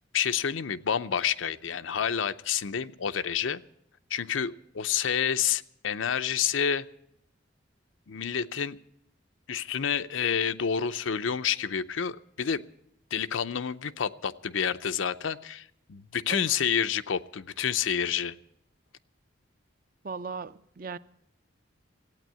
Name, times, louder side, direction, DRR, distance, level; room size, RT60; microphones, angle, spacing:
voice 1, 0.1-3.6 4.1-6.8 8.1-8.8 9.5-12.6 13.1-18.3, left 7 dB, 80° left, 0.6 m, -29 dB
voice 2, 20.0-21.0, right 5 dB, 45° right, 0.5 m, -37 dB
15.5 x 9.0 x 9.1 m
head